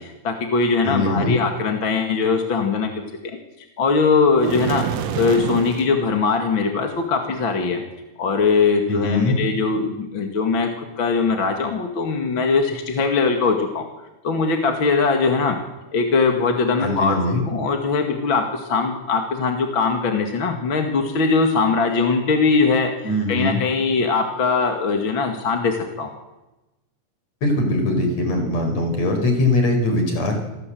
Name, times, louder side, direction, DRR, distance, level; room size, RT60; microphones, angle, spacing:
voice 1, 0.0-3.4 3.8-4.9 5.2-7.8 8.2-13.9 14.2-15.6 15.9-26.1, left 4 dB, 45° left, 4 dB, 2.7 m, -21 dB
voice 2, 0.8-1.4 8.9-9.4 16.8-17.4 23.0-23.6 27.4-30.4, left 2 dB, 60° left, 5 dB, 6.1 m, -21 dB
sound 1, 4.4-5.9, right 8 dB, 65° right, 2.2 m, -26 dB
28.0 x 19.0 x 7.8 m, 1.0 s
omnidirectional pair, 3.5 m